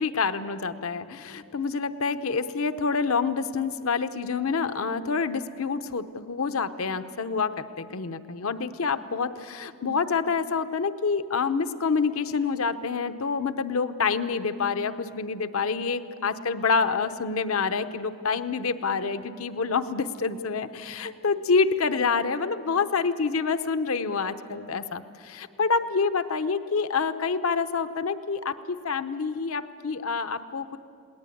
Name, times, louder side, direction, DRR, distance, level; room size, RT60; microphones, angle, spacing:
voice 1, 0.0-30.8, left 5 dB, 85° left, 11 dB, 0.8 m, -27 dB
21.0 x 18.5 x 8.5 m, 2.5 s
head